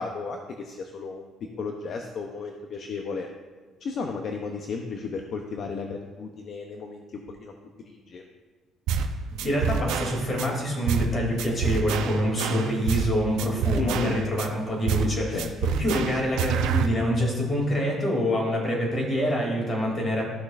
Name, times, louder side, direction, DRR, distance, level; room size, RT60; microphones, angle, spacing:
voice 1, 0.0-3.3 3.8-7.5 7.8-8.2 13.7-14.2 15.3-15.7, left 4 dB, 50° left, 3 dB, 0.7 m, -34 dB
sound 1, 8.9-9.1 9.4-10.5 10.9-11.1 11.4-13.1 13.4-14.5 14.9-15.1 15.4-16.9, right 6 dB, 90° right, 0.6 m, -27 dB
voice 2, 9.4-15.4 15.8-20.2, equal, 25° left, -2 dB, 2.7 m, -26 dB
13.5 x 6.3 x 2.5 m, 1.4 s
cardioid pair, 125°, 0 cm